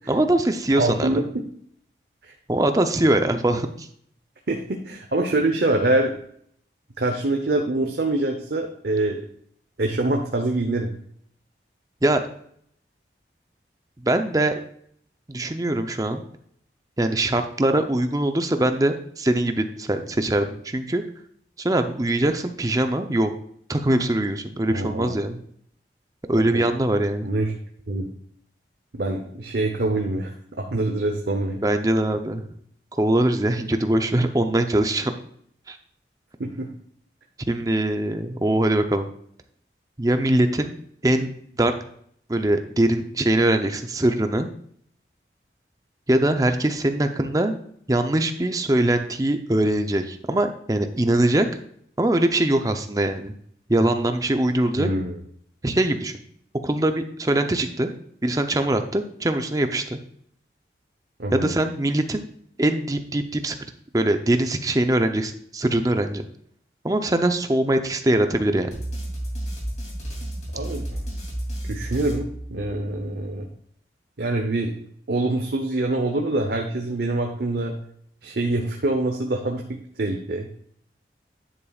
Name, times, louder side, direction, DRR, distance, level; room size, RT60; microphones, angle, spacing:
voice 1, 0.1-1.2 2.5-3.9 12.0-12.2 14.0-14.5 15.3-16.2 17.0-21.0 21.6-23.3 23.7-25.4 26.3-27.3 31.6-32.4 33.0-35.1 35.7-35.8 37.5-39.1 40.0-40.7 41.0-41.3 41.6-41.7 42.3-44.5 46.1-47.5 47.9-51.5 52.0-53.3 53.7-54.9 55.6-56.1 56.6-57.9 58.2-60.0 61.3-62.2 62.6-63.6 63.9-66.3 66.8-68.7, right 1 dB, 20° right, 7 dB, 0.6 m, -22 dB
voice 2, 0.8-1.4 2.2-2.3 4.5-6.1 7.0-9.2 9.8-10.9 24.7-25.2 26.5-26.6 27.2-27.5 27.9-28.1 28.9-30.3 30.6-31.6 36.4-36.7 54.7-55.2 61.2-61.5 70.5-71.0 71.7-73.5 74.2-74.7 75.1-77.7 78.2-80.5, right 2 dB, 65° right, 3 dB, 0.8 m, -25 dB
sound 1, 68.7-73.0, right 1 dB, 40° left, 2.7 m, -32 dB
9.9 x 8.4 x 2.4 m, 0.65 s
head